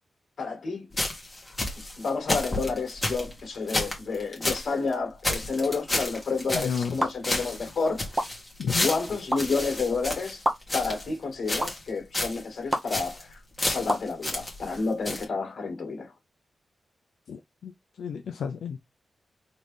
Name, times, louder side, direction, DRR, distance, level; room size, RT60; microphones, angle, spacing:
voice 1, 0.4-0.9 2.0-8.0 8.8-10.4 10.7-13.4 13.6-16.1, left 4 dB, 65° left, 2.2 m, -30 dB
sound 1, 0.9-4.7 4.9-5.0 5.2-7.0 7.2-11.1 11.5-11.9 12.1-12.4 12.7-13.2 13.6-14.8 15.0-15.2, left 1 dB, 20° left, 1.8 m, -31 dB
voice 2, 6.5-7.1 8.6-8.9 17.3-17.7 18.0-18.8, left 7 dB, 90° left, 0.4 m, -32 dB
sound 2, 7.0-7.1 8.2-8.3 9.3-9.4 10.4-10.5 11.6-11.7 12.7-12.8 13.9-14.1, right 1 dB, 15° right, 0.9 m, -24 dB
4.0 x 3.1 x 3.4 m
wide cardioid pair, 110°, 0 cm